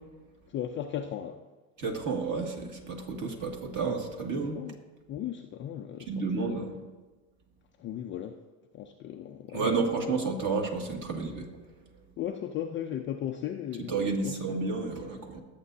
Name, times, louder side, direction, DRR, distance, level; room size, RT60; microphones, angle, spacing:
voice 1, 0.5-1.4 4.4-4.8 5.1-6.7 7.8-8.4 8.7-10.1 12.2-13.9 14.2-14.6, left 10 dB, 25° left, 4 dB, 0.4 m, -37 dB
voice 2, 1.8-4.6 6.1-6.8 9.5-11.5 13.8-15.4, right 4 dB, 35° right, 2 dB, 2.2 m, -31 dB
22.0 x 8.4 x 2.7 m, 1.2 s
supercardioid pair, 115°, 49 cm